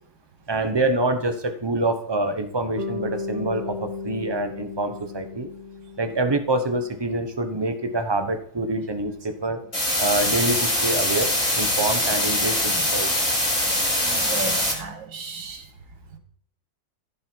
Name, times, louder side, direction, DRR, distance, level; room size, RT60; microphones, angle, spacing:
voice 1, 0.5-5.5 6.0-9.6 10.0-13.1, right 2 dB, 20° right, 8 dB, 0.7 m, -26 dB
Bass guitar, 2.8-7.0, left 3 dB, 35° right, 1.8 m, -35 dB
sound 1, 9.7-14.7, left 1 dB, 15° left, 3.8 m, -23 dB
voice 2, 14.0-15.7, right 4 dB, 75° right, 6 dB, 2.4 m, -35 dB
15.0 x 6.4 x 4.6 m, 0.65 s
omnidirectional pair, 2.1 m